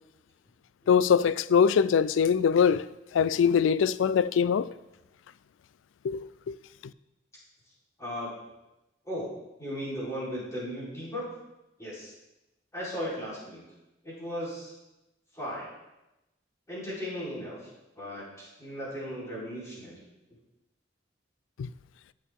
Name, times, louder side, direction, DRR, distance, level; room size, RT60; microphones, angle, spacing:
voice 1, 0.9-2.9 3.1-4.7 6.0-6.6, left 7 dB, 90° left, 0.3 m, -23 dB
voice 2, 8.0-8.3 9.1-9.2 9.6-11.3 11.8-12.1 12.7-13.6 14.0-14.7 15.3-15.7 16.7-17.7 18.0-19.9, equal, 15° left, 4.0 m, -36 dB
13.5 x 6.5 x 3.7 m
head